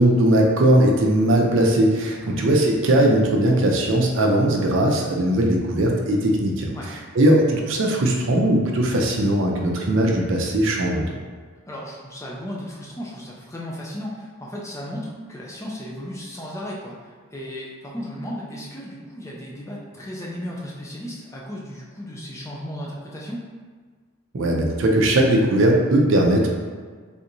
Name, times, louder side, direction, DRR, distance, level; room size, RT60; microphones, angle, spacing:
voice 1, 0.0-6.7 7.1-11.2 24.3-26.5, right 1 dB, 60° right, 0 dB, 0.5 m, -19 dB
voice 2, 11.7-23.4, equal, 15° left, -3 dB, 0.4 m, -35 dB
3.4 x 2.9 x 2.6 m, 1.6 s
head